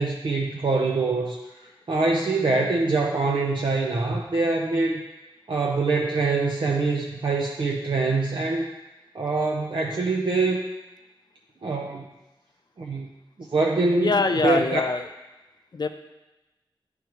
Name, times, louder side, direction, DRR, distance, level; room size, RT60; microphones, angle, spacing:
voice 1, 0.0-1.4 1.9-5.0 5.5-8.7 9.1-10.6 11.6-12.0 12.8-13.1 13.5-14.8, right 3 dB, 60° right, -1 dB, 0.6 m, -24 dB
voice 2, 14.0-15.1 15.7-15.9, left 4 dB, 50° left, 8 dB, 0.4 m, -23 dB
10.0 x 3.5 x 3.0 m, 1.0 s
wide cardioid pair, 80°, 9 cm